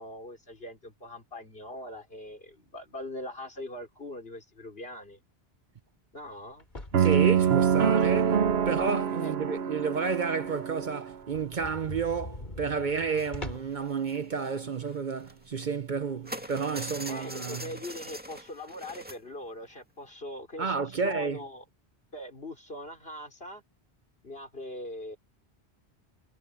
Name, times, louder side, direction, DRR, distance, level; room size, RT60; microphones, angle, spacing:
voice 1, 0.0-5.2 6.1-6.7 9.2-9.7 17.1-21.6 22.1-23.6 24.2-25.2, left 1 dB, 60° left, 4.7 m, -41 dB
sound 1, 6.6-9.2 9.6-9.7 10.1-10.2 10.5-10.6 10.8-10.9 11.2-13.9, left 1 dB, 45° left, 3.4 m, -43 dB
sound 2, 6.9-11.1, right 8 dB, 70° right, 1.1 m, -25 dB
voice 2, 7.0-17.7 20.6-21.4, right 5 dB, 50° right, 0.8 m, -31 dB
sound 3, 13.2-13.4 13.6-15.9 16.2-19.2 19.6-19.8 20.1-20.2, equal, 10° right, 2.2 m, -42 dB
omnidirectional pair, 1.1 m